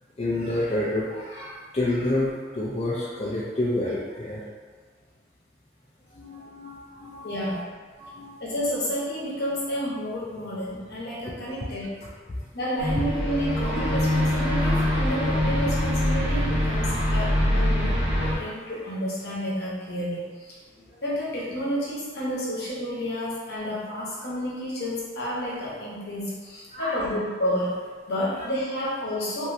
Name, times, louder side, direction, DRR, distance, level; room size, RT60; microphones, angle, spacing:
voice 1, 0.2-4.4 6.1-7.5 8.0-8.3 18.3-18.4 20.8-20.9 26.7-27.0, left 1 dB, 35° left, -8 dB, 0.4 m, -29 dB
voice 2, 7.2-7.6 8.4-11.9 12.5-20.6 21.0-27.8 28.1-29.5, equal, 65° left, -6 dB, 0.9 m, -30 dB
sound 1, 12.8-18.3, left 1 dB, 80° right, 1.0 m, -24 dB
3.0 x 2.7 x 2.6 m, 1.5 s
head